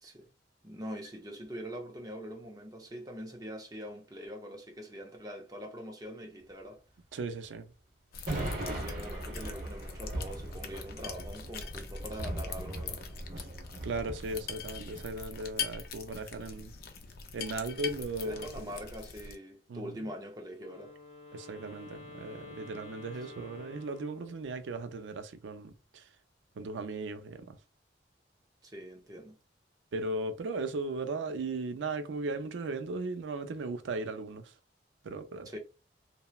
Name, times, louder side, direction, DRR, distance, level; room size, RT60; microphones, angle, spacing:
voice 1, 0.6-6.8 8.5-13.0 18.2-20.9 28.6-29.4 35.4-35.6, equal, 20° right, 0.6 m, -43 dB
voice 2, 7.1-7.7 13.4-13.5 13.8-16.7 17.3-18.7 19.7-20.0 21.3-26.0 26.6-27.6 29.9-34.5 35.0-35.5, right 3 dB, 80° right, 0.4 m, -37 dB
sound 1, 8.1-19.3, left 5 dB, 50° left, 0.4 m, -42 dB
sound 2, 8.3-15.0, right 1 dB, 45° right, 0.9 m, -39 dB
Wind instrument woodwind instrument, 20.5-24.7, left 2 dB, 30° left, 0.9 m, -50 dB
2.9 x 2.1 x 2.3 m
head